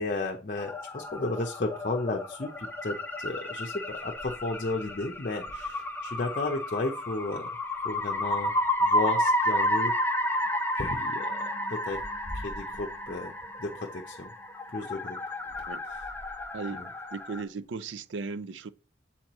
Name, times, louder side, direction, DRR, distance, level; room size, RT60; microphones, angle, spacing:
voice 1, 0.0-7.5 7.8-8.5 8.8-9.9 10.7-12.0 12.3-13.3 13.6-14.3 14.7-15.2 16.7-16.9, left 2 dB, 45° left, 0.7 m, -33 dB
sound 1, 0.6-17.4, left 1 dB, 10° left, 0.7 m, -31 dB
sound 2, 3.3-6.9 7.3-7.6 8.0-8.7 9.5-9.7 10.1-10.4 11.8-14.4 15.3-17.7, left 1 dB, 55° right, 3.2 m, -49 dB
voice 2, 16.5-16.8 17.1-18.7, right 4 dB, 85° right, 0.4 m, -36 dB
7.5 x 4.4 x 3.0 m
head